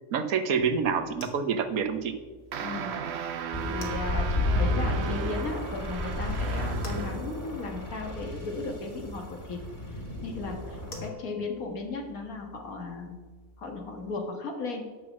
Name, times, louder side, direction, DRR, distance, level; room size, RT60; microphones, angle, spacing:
voice 1, 0.1-2.1, right 6 dB, 90° right, 9 dB, 1.3 m, -27 dB
sound 1, 0.6-14.1, left 3 dB, 70° left, 2.1 m, -49 dB
sound 2, 2.5-7.3, right 7 dB, 55° right, 0.9 m, -36 dB
voice 2, 2.6-2.9 3.7-9.6 10.2-13.2 13.6-14.8, left 3 dB, 90° left, 2 dB, 2.1 m, -36 dB
sound 3, 3.5-11.1, left 1 dB, 35° left, 2.1 m, -32 dB
11.0 x 5.8 x 7.4 m, 1.3 s
omnidirectional pair, 1.5 m